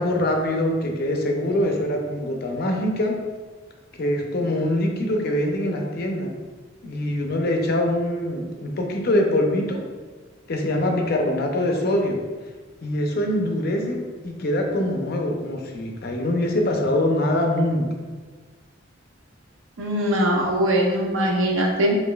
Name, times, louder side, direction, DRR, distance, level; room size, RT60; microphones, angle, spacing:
voice 1, 0.0-3.2 3.9-6.3 6.8-9.8 10.5-12.2 12.8-17.9, left 1 dB, 55° left, 2 dB, 0.5 m, -23 dB
voice 2, 19.8-22.0, equal, 80° right, 1 dB, 0.6 m, -21 dB
5.1 x 2.6 x 2.3 m, 1.4 s
head